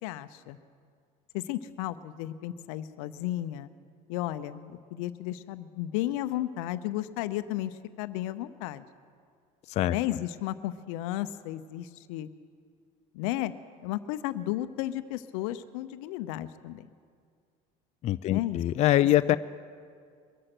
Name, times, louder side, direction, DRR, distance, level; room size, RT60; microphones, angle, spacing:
voice 1, 0.0-0.6 1.3-3.7 4.1-8.8 9.9-12.3 13.1-13.5 13.8-16.9 18.3-18.6, left 14 dB, 80° left, 13 dB, 0.7 m, -33 dB
voice 2, 18.0-19.4, left 14 dB, 40° left, 13 dB, 0.4 m, -23 dB
22.5 x 7.9 x 6.0 m, 2.1 s
supercardioid pair, 110°, 17 cm